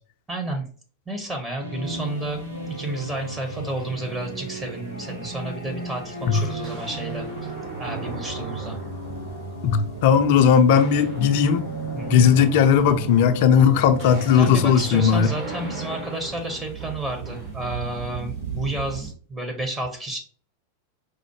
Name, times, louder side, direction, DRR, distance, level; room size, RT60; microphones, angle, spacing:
voice 1, 0.3-0.6 1.1-2.4 2.8-7.5 7.8-8.8 11.9-12.3 14.3-20.2, right 1 dB, 15° right, 0.8 m, -31 dB
sound 1, 1.6-16.1, right 2 dB, 85° right, 0.8 m, -36 dB
sound 2, 1.8-19.1, right 5 dB, 60° right, 1.8 m, -41 dB
sound 3, 5.8-5.9 6.6-9.5 9.9-10.2 10.5-17.6, right 1 dB, 40° right, 1.0 m, -39 dB
voice 2, 9.6-11.7 12.1-15.3, left 7 dB, 50° left, 0.4 m, -17 dB
4.8 x 2.0 x 3.0 m
figure-of-eight pair, 90°, 0 cm